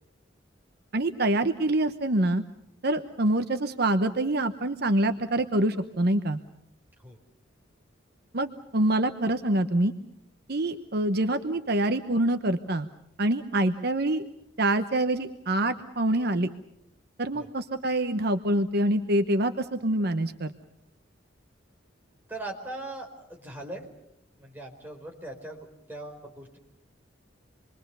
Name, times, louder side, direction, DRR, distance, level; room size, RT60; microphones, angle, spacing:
voice 1, 0.9-2.4 2.8-6.4 8.3-9.9 10.5-12.9 13.2-14.2 14.6-16.5 17.2-20.5, right 1 dB, 55° right, 8 dB, 1.0 m, -25 dB
voice 2, 22.3-23.9 24.4-26.6, right 2 dB, 10° right, 0 dB, 4.6 m, -40 dB
27.5 x 22.5 x 6.9 m, 0.77 s
head